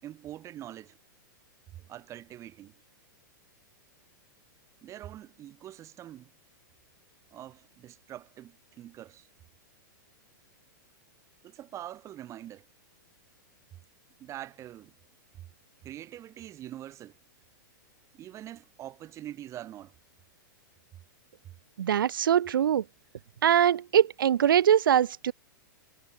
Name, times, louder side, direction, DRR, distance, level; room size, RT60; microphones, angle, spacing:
voice 1, 0.0-1.0 1.8-2.7 4.8-6.3 7.3-9.3 11.4-12.6 14.2-14.9 15.8-17.1 18.1-19.9, right 12 dB, 25° right, 4.2 m, -44 dB
voice 2, 21.8-22.8 23.4-25.3, right 9 dB, 85° right, 1.1 m, -22 dB
hypercardioid pair, 140°, 11 cm